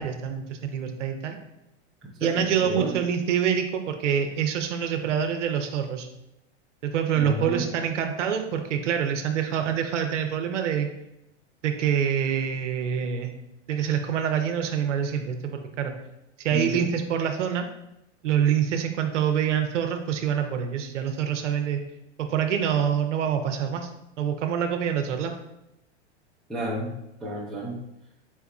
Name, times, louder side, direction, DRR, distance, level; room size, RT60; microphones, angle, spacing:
voice 1, 0.0-1.4 2.2-6.1 6.8-10.9 11.6-13.3 13.7-15.9 16.4-17.7 18.2-21.8 22.2-23.9 24.2-25.3, right 8 dB, 85° right, 5 dB, 0.6 m, -26 dB
voice 2, 2.2-2.9 7.1-7.6 16.5-16.9 26.5-27.0 27.2-27.8, right 1 dB, ahead, -8 dB, 0.6 m, -31 dB
4.4 x 3.5 x 2.4 m, 0.87 s
hypercardioid pair, 125°, 36 cm